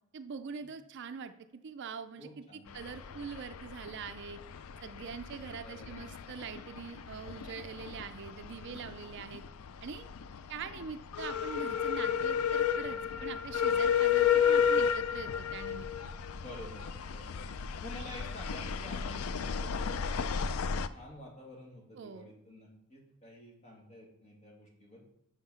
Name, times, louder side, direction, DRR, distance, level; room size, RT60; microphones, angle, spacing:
voice 1, 0.1-4.4 4.8-9.4 9.8-10.1 10.5-16.1 21.9-22.3, right 6 dB, 50° right, 10 dB, 0.4 m, -43 dB
voice 2, 2.2-2.7 5.6-6.1 8.4-8.7 16.4-17.3 17.8-25.0, left 1 dB, 30° left, -2 dB, 2.1 m, -50 dB
sound 1, 2.7-20.9, left 7 dB, 75° left, 0.4 m, -33 dB
6.3 x 5.7 x 5.6 m, 0.84 s
head